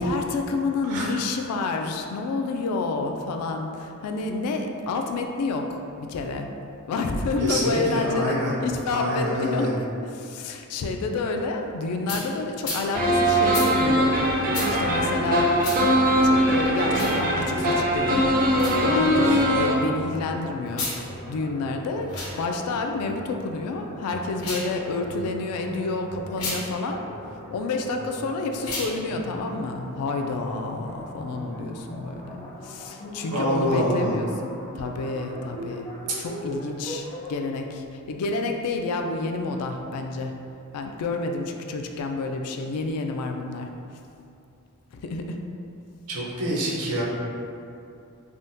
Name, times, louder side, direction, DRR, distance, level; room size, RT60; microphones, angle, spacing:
voice 1, 0.0-6.5 6.9-14.2 14.7-15.5 16.2-20.9 21.3-27.0 27.5-35.9 36.2-40.3 40.7-43.7 44.9-45.4, left 3 dB, 85° left, 9 dB, 0.3 m, -29 dB
voice 2, 7.4-8.5 8.9-9.7 33.3-34.2 46.1-47.0, equal, 80° right, -4 dB, 0.7 m, -26 dB
sound 1, 12.1-12.2 12.6-12.8 13.5-13.7 14.5-14.7 15.6-15.8 16.9-17.1 18.5-18.8 20.7-21.0 22.0-22.3 24.3-24.7 26.3-26.6 28.6-28.9, left 3 dB, 65° left, 0.7 m, -31 dB
sound 2, 12.9-19.7, equal, 40° right, 0.4 m, -21 dB
sound 3, 19.1-37.3, equal, 20° left, 0.4 m, -40 dB
3.5 x 2.1 x 2.6 m, 2.6 s
head